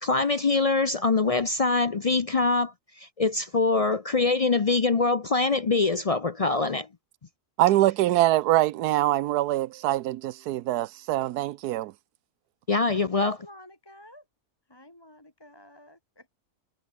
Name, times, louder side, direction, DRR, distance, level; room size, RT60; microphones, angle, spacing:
voice 1, 0.0-6.9 12.7-13.3, left 3 dB, 60° left, 0.3 m, -24 dB
voice 2, 7.6-11.9, right 15 dB, 80° right, 1.2 m, -24 dB
voice 3, 13.1-14.3 14.7-16.3, left 1 dB, 15° left, 2.2 m, -50 dB
omnidirectional pair, 1.7 m